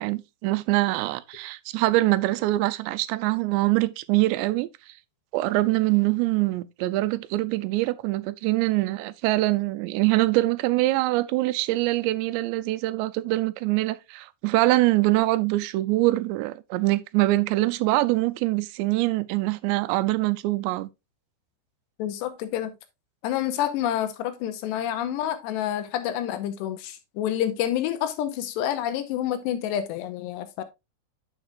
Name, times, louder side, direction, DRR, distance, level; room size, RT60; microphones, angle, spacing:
voice 1, 0.0-4.7 5.3-20.9, right 18 dB, 90° right, 2.8 m, -24 dB
voice 2, 22.0-22.7 23.2-30.6, left 11 dB, 85° left, 3.0 m, -28 dB
9.1 x 7.3 x 2.4 m
omnidirectional pair, 4.9 m